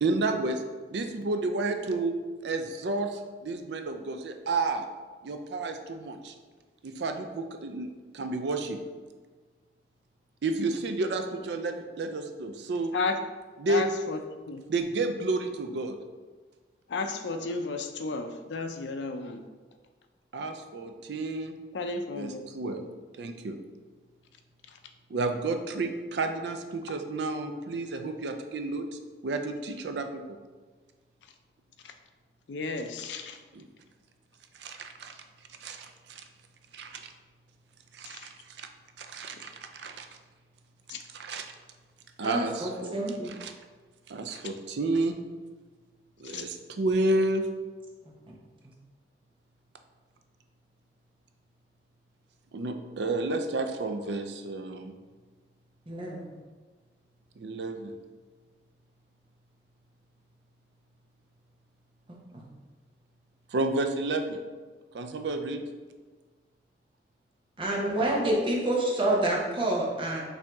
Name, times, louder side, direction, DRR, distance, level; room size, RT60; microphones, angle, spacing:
voice 1, 0.0-0.6 0.9-2.2 2.4-4.9 5.2-6.3 6.8-8.8 10.4-12.9 13.6-13.9 14.7-16.0 20.3-21.6 22.1-22.8 23.2-23.6 25.1-30.4 33.5-33.7 34.6-35.2 35.6-36.2 36.7-37.1 37.9-38.7 39.0-40.1 41.1-41.5 42.2-42.9 43.2-43.5 44.1-45.2 46.2-47.5 52.5-54.9 57.4-57.9 63.5-64.4 64.9-65.6, right 2 dB, 80° right, 6 dB, 0.4 m, -31 dB
voice 2, 13.7-14.6 16.9-19.5 21.7-22.9 31.8-31.9 32.5-33.4 38.1-38.3 40.9-41.0 46.2-46.5, left 3 dB, 85° left, 6 dB, 0.5 m, -33 dB
voice 3, 42.2-43.3 48.3-48.4 55.9-56.3 62.3-62.4 67.6-70.2, right 1 dB, 30° right, -2 dB, 0.8 m, -28 dB
5.6 x 2.7 x 3.4 m, 1.4 s
head